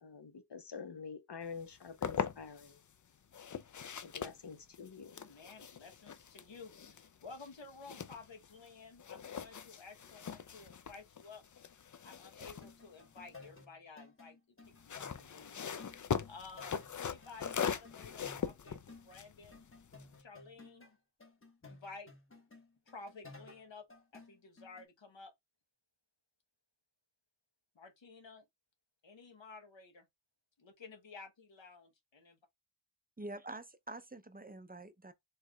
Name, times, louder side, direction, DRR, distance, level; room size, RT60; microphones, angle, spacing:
voice 1, 0.0-2.8 4.0-5.2, left 5 dB, 65° left, 0.8 m, -47 dB
sound 1, 1.6-2.7 3.3-8.7 9.0-13.6 14.6-20.2, left 7 dB, 45° left, 0.4 m, -41 dB
voice 2, 5.0-11.4 12.0-15.6 16.2-19.7 20.2-21.0 21.6-22.1 22.9-23.9 24.1-25.3 27.7-28.4 29.0-30.1 30.6-32.4, left 4 dB, 85° left, 1.0 m, -53 dB
sound 2, 12.5-19.3 19.5-20.9 21.2-24.8, left 3 dB, 30° left, 1.0 m, -56 dB
voice 3, 33.2-35.1, right 2 dB, 20° right, 0.5 m, -46 dB
4.4 x 3.1 x 2.3 m
wide cardioid pair, 60°, 44 cm